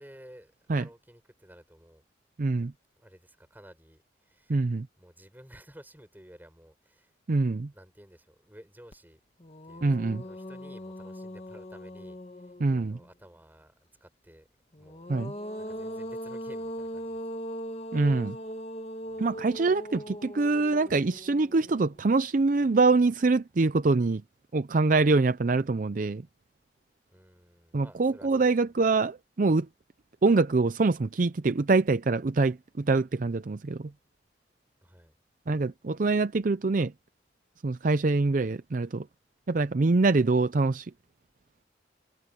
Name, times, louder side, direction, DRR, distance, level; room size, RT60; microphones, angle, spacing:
voice 1, 0.0-2.0 3.0-4.7 5.0-7.1 7.7-9.2 9.6-13.7 14.0-14.5 14.7-15.1 15.6-17.2 18.3-18.4 19.1-19.5 27.1-28.5 34.8-35.1, equal, 10° right, 5.8 m, -53 dB
voice 2, 2.4-2.7 4.5-4.9 7.3-7.7 9.8-10.2 12.6-13.0 15.1-15.3 17.9-18.4 19.2-24.2 24.5-26.2 27.7-29.7 30.2-33.8 35.5-36.9 37.6-39.0 39.5-40.9, right 3 dB, 45° right, 0.5 m, -24 dB
sound 1, 8.9-9.0 9.4-13.1 14.7-22.0, equal, 35° left, 1.6 m, -40 dB
head